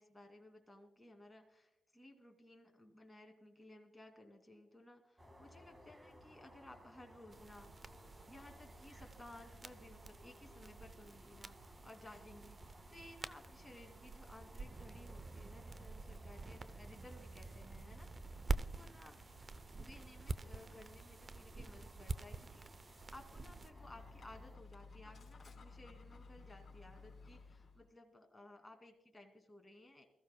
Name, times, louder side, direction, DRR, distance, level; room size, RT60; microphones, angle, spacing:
voice 1, 0.0-7.9 8.3-18.1 18.6-19.2 19.8-30.0, left 1 dB, 15° left, 3 dB, 2.4 m, -58 dB
sound 1, 5.2-24.6, equal, 20° right, 1.9 m, -61 dB
Side A End, 7.3-23.7, right 3 dB, 40° right, 0.5 m, -47 dB
Dog, 23.7-27.9, left 4 dB, 50° left, 3.9 m, -56 dB
21.5 x 14.5 x 2.2 m, 0.89 s
cardioid pair, 70°, 0 cm